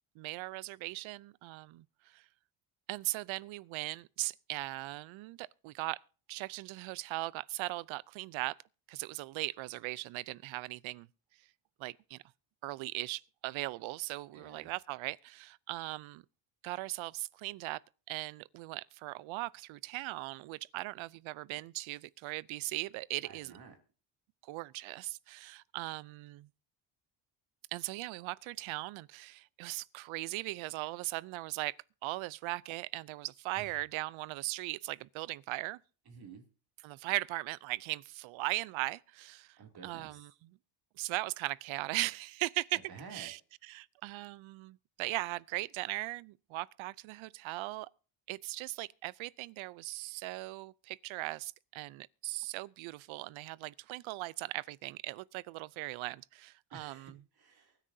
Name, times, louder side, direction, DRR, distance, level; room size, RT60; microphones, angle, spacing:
voice 1, 0.2-1.8 2.1-2.2 2.9-6.0 6.3-8.6 8.9-11.1 11.8-12.2 12.6-16.2 16.6-17.8 18.1-23.5 24.5-26.5 27.7-31.8 32.0-35.8 36.8-39.6 39.8-40.3 41.0-42.8 43.1-43.4 43.7-47.9 48.3-57.2, right 19 dB, 70° right, 0.6 m, -39 dB
voice 2, 14.3-14.7 23.2-23.7 33.5-33.8 36.0-36.4 39.6-40.3 42.7-43.3 56.7-57.8, right 5 dB, 50° right, 2.8 m, -51 dB
24.0 x 10.0 x 2.7 m
cardioid pair, 95°, 48 cm